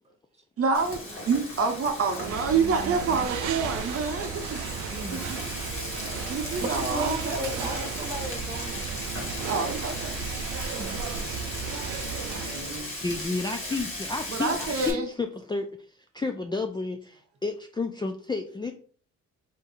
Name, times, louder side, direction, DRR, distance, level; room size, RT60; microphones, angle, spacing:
voice 1, 0.6-5.4 6.1-7.9 9.5-10.2 12.5-12.9 14.3-15.1, right 4 dB, 50° right, 0.8 m, -28 dB
Frying (food), 0.7-14.9, left 1 dB, 45° left, 1.7 m, -37 dB
sound 1, 2.0-12.8, right 7 dB, 85° right, 0.6 m, -35 dB
voice 2, 2.6-3.1 13.0-15.7 16.1-18.7, left 3 dB, 15° left, 0.4 m, -31 dB
voice 3, 4.9-5.3 6.0-6.3 6.6-8.9 10.7-11.0 13.6-13.7, right 1 dB, 20° right, 1.3 m, -35 dB
3.7 x 2.7 x 4.0 m
cardioid pair, 90°, 30 cm